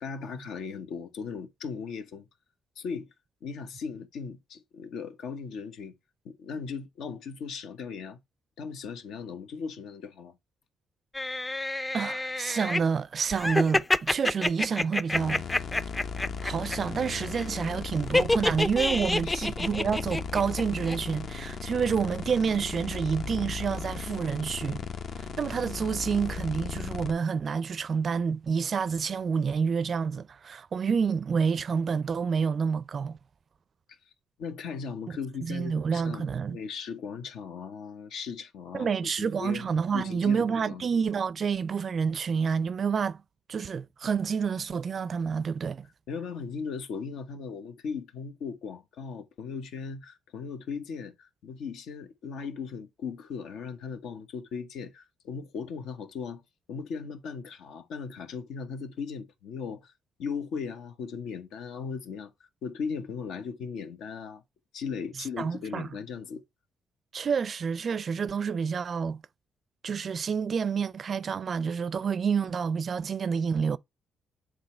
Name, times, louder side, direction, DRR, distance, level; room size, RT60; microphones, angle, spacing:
voice 1, 0.0-2.3 2.8-3.1 3.4-5.9 6.2-8.2 8.6-10.3 19.2-19.5 34.4-39.7 39.9-40.8 46.1-56.4 56.7-59.9 60.2-62.3 62.6-64.4 64.7-66.4, left 5 dB, 80° left, 1.2 m, -38 dB
sound 1, 11.1-12.8 13.3-16.8 17.0-17.4 18.1-20.6 20.9-21.0, left 2 dB, 15° left, 0.4 m, -27 dB
voice 2, 11.9-15.4 16.4-24.9 25.4-33.2 35.4-36.6 38.7-43.2 43.5-45.9 65.4-65.9 67.1-69.2 69.8-73.8, right 6 dB, 45° right, 0.4 m, -28 dB
sound 2, 15.1-27.1, left 6 dB, 60° left, 0.8 m, -36 dB
7.9 x 3.7 x 4.3 m
cardioid pair, 90°, 0 cm